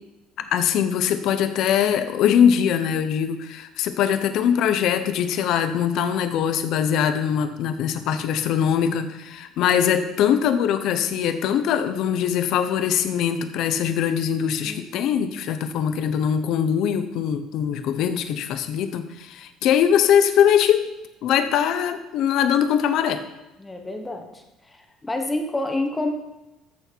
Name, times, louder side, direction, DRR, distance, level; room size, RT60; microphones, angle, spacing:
voice 1, 0.4-20.9 21.2-23.2, left 8 dB, 60° left, 10 dB, 0.9 m, -22 dB
voice 2, 23.6-26.1, left 2 dB, 10° left, 4 dB, 1.1 m, -28 dB
14.0 x 6.5 x 4.6 m, 0.97 s
cardioid pair, 155°, 0 cm